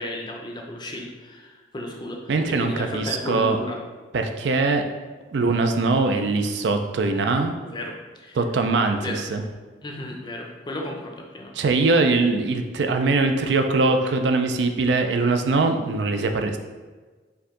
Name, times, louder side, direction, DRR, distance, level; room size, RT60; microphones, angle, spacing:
voice 1, 0.0-3.8 7.1-7.2 7.6-8.4 9.0-9.2 9.8-11.5, left 1 dB, 25° left, 1 dB, 0.5 m, -34 dB
voice 2, 2.3-3.6 4.1-4.8 5.3-7.5 8.3-9.4 11.5-16.6, right 3 dB, 70° right, 6 dB, 0.4 m, -22 dB
4.6 x 2.6 x 3.7 m, 1.4 s
head